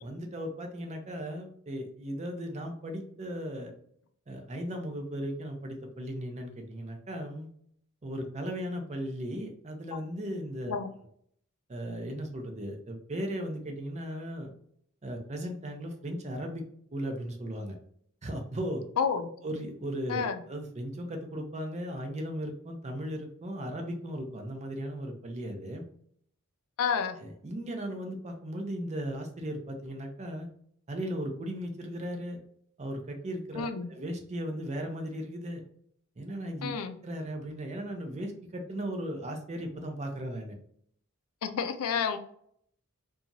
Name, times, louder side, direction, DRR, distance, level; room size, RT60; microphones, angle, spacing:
voice 1, 0.0-3.7 4.3-7.5 8.0-10.7 11.7-14.5 15.0-16.6 16.9-17.8 18.2-18.8 19.4-25.8 27.2-30.5 30.9-32.4 32.8-35.6 36.2-36.7 37.0-40.5, equal, 30° right, 3 dB, 0.5 m, -36 dB
voice 2, 19.0-19.3 20.1-20.4 26.8-27.2 33.6-33.9 36.6-37.0 41.4-42.2, left 6 dB, 80° left, 7 dB, 0.4 m, -29 dB
2.9 x 2.3 x 2.6 m, 0.65 s
head